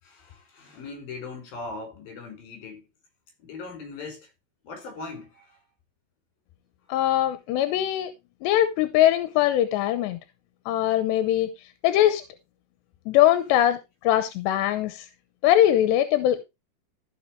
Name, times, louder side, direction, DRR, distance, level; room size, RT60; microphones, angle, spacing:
voice 1, 0.0-2.8 3.4-4.3 4.6-5.6, left 3 dB, 55° left, 6.3 m, -39 dB
voice 2, 6.9-8.1 8.4-10.2 10.7-11.5 11.8-12.2 13.1-15.1 15.4-16.4, left 12 dB, 90° left, 3.0 m, -21 dB
14.5 x 5.8 x 4.5 m
omnidirectional pair, 5.0 m